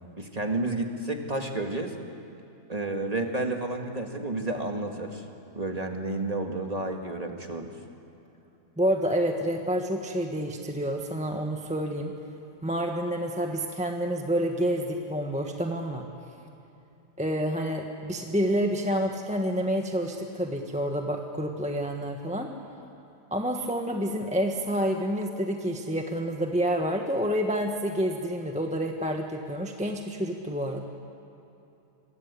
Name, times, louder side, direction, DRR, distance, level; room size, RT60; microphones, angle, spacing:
voice 1, 0.2-1.9 2.7-5.2 5.5-7.7, right 2 dB, 25° right, 3 dB, 1.9 m, -31 dB
voice 2, 8.8-12.1 12.6-16.0 17.2-22.5 23.3-30.8, equal, 5° right, 3 dB, 1.2 m, -28 dB
26.5 x 22.0 x 8.4 m, 2.8 s
omnidirectional pair, 1.8 m